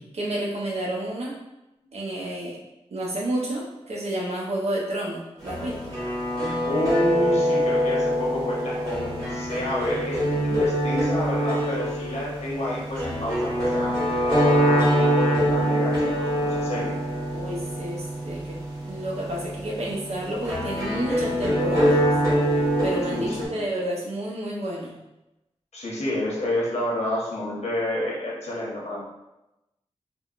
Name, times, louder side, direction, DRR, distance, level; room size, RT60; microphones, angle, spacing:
voice 1, 0.1-1.4 1.9-2.6 2.9-5.9 17.3-18.6 18.8-22.0 22.8-24.9, right 1 dB, 70° right, -3 dB, 0.7 m, -30 dB
sound 1, 5.4-23.5, equal, 35° right, 1.4 m, -24 dB
voice 2, 6.7-16.9 23.1-23.7 25.7-29.0, left 1 dB, 80° left, -5 dB, 0.9 m, -29 dB
3.4 x 2.1 x 2.4 m, 0.96 s
wide cardioid pair, 80°, 11 cm